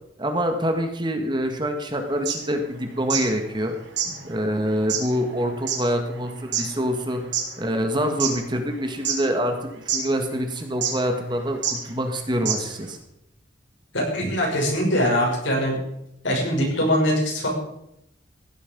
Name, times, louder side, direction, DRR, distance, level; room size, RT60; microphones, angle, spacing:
voice 1, 0.2-3.7 4.2-7.2 7.6-13.0, equal, 25° right, 5 dB, 1.7 m, -25 dB
sound 1, 2.1-3.3 3.6-3.7 3.9-7.5 8.0-8.7 9.0-9.6 9.9-10.0 10.8-11.1 11.6-11.8 12.1-12.2 12.4-12.8, right 7 dB, 65° right, 3.3 m, -27 dB
voice 2, 13.9-15.8 16.2-17.5, equal, 80° left, -1 dB, 6.1 m, -22 dB
16.0 x 11.5 x 5.4 m, 0.80 s
head